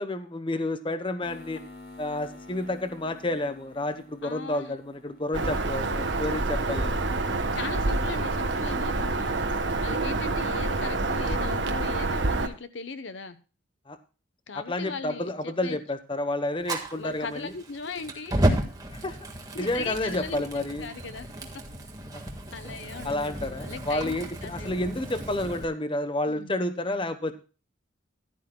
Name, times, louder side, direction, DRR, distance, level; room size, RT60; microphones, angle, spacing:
voice 1, 0.0-1.6 2.0-7.0 13.9-14.0 14.5-17.5 18.9-19.2 19.6-20.9 22.1-22.2 23.0-27.3, left 1 dB, 25° left, 10 dB, 0.9 m, -30 dB
sound 1, 1.2-9.5, left 2 dB, 50° left, 5.0 m, -49 dB
voice 2, 4.2-4.7 7.5-9.4 9.8-13.4 14.5-15.8 16.9-18.4 19.5-20.5 20.8-21.3 22.5-24.1 24.4-24.7 26.3-26.5, left 4 dB, 65° left, 12 dB, 0.9 m, -38 dB
Bird vocalization bird call bird song, 5.3-12.5, right 2 dB, 65° right, 1.2 m, -27 dB
Fire, 16.6-25.6, right 1 dB, 20° right, 1.6 m, -33 dB
15.0 x 11.5 x 2.2 m, 0.33 s
head